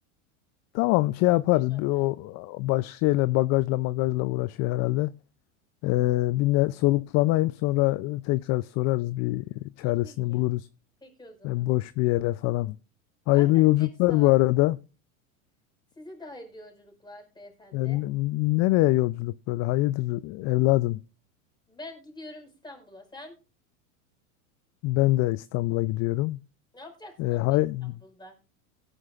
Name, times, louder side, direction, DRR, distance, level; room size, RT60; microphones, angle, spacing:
voice 1, 0.7-5.1 5.8-9.4 9.8-10.7 11.4-12.8 13.3-14.8 17.7-21.0 24.8-26.4 27.2-28.0, left 19 dB, 40° left, 0.4 m, -24 dB
voice 2, 1.5-2.1 9.8-10.4 11.0-11.7 13.3-14.3 15.9-18.0 21.7-23.4 26.7-27.6 28.0-28.3, left 1 dB, 10° left, 5.0 m, -46 dB
17.5 x 9.9 x 2.4 m
hypercardioid pair, 100°, 43 cm